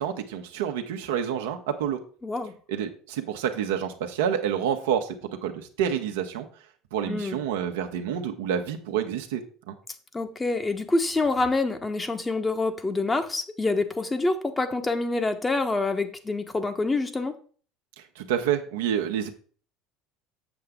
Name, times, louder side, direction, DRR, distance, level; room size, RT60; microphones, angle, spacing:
voice 1, 0.0-2.0 2.7-5.2 5.4-6.4 6.9-9.4 9.7-9.8 18.2-19.3, right 9 dB, 75° right, 5 dB, 1.1 m, -28 dB
voice 2, 2.2-2.5 7.1-7.4 10.1-17.3, left 3 dB, 20° left, 7 dB, 1.2 m, -26 dB
7.8 x 7.2 x 3.7 m, 0.42 s
hypercardioid pair, 70°, 0 cm